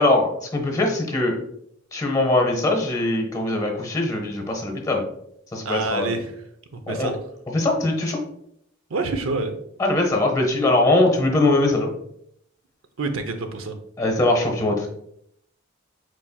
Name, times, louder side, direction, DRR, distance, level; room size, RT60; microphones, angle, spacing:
voice 1, 0.0-1.4 1.9-5.0 5.5-6.1 6.9-7.1 7.5-8.2 9.8-11.9 14.0-14.9, left 2 dB, 15° left, 2 dB, 0.9 m, -21 dB
voice 2, 5.6-6.3 6.7-7.2 8.9-9.6 13.0-13.8, right 3 dB, 75° right, 7 dB, 0.6 m, -27 dB
4.5 x 4.2 x 2.3 m, 0.72 s
head